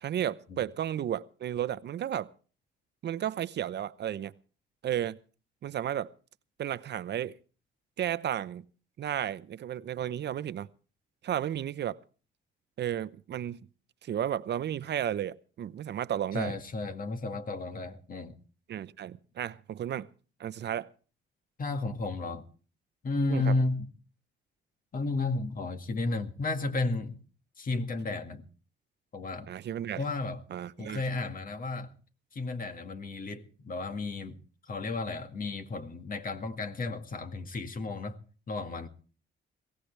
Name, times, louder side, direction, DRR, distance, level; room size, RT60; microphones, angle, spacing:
voice 1, 0.0-2.3 3.0-4.3 4.8-5.2 5.6-6.1 6.6-7.4 8.0-8.6 9.0-10.7 11.2-12.0 12.8-13.6 14.0-16.6 18.7-20.1 20.4-20.9 23.3-23.5 29.5-30.0 30.5-31.0, right 10 dB, 60° right, 0.8 m, -33 dB
voice 2, 16.3-18.4 21.6-22.5 23.0-23.9 24.9-27.2 27.6-28.4 29.1-29.5 30.0-30.4 30.8-31.9 32.3-34.4 34.7-38.2 38.5-38.9, left 3 dB, 45° left, 2.0 m, -33 dB
22.0 x 17.0 x 3.3 m
cardioid pair, 90°, 20 cm